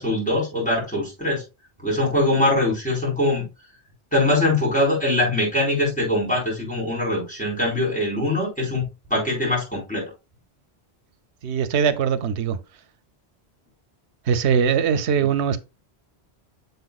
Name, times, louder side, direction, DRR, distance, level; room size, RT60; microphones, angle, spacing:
voice 1, 0.0-1.4 1.8-3.4 4.1-8.8 9.1-10.1 15.2-15.3, left 1 dB, 5° left, 4.9 m, -22 dB
voice 2, 11.4-12.6 14.3-15.6, right 7 dB, 85° right, 0.9 m, -21 dB
8.0 x 7.0 x 2.3 m
omnidirectional pair, 1.1 m